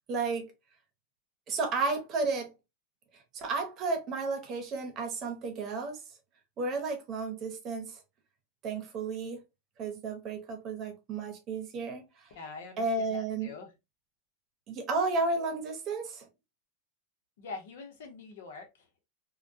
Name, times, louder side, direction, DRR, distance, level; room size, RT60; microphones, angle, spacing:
voice 1, 0.1-0.5 1.5-2.5 3.3-6.0 6.6-8.0 8.6-9.4 9.8-12.3 12.8-13.5 14.7-16.3, right 3 dB, 40° right, 0.8 m, -32 dB
voice 2, 12.3-13.7 17.4-19.0, left 4 dB, 75° left, 0.8 m, -45 dB
2.2 x 2.2 x 2.6 m
hypercardioid pair, 110°, 0 cm